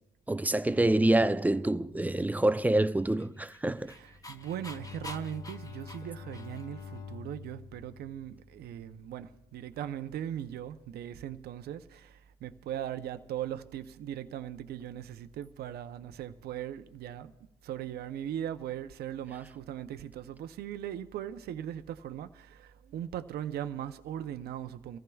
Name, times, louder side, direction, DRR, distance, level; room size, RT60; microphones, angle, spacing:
voice 1, 0.3-3.9, right 1 dB, 10° right, 0.5 m, -26 dB
Dog, 3.0-6.8, left 2 dB, 20° left, 0.9 m, -48 dB
voice 2, 3.9-17.3 17.6-25.0, right 10 dB, 70° right, 0.6 m, -39 dB
Bowed string instrument, 4.0-9.2, left 5 dB, 50° left, 0.8 m, -47 dB
26.0 x 14.5 x 2.3 m
cardioid pair, 95°, 17 cm